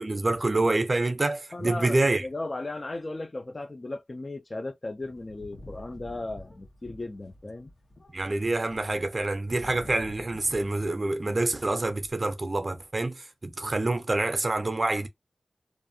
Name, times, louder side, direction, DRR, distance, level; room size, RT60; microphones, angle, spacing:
voice 1, 0.0-2.3 8.1-15.1, right 2 dB, 45° right, 0.6 m, -27 dB
voice 2, 1.5-7.7, left 2 dB, 45° left, 0.4 m, -36 dB
sound 1, 5.0-10.9 11.2-12.1, left 1 dB, 70° left, 0.9 m, -48 dB
2.6 x 2.4 x 2.7 m
wide cardioid pair, 60°, 0 cm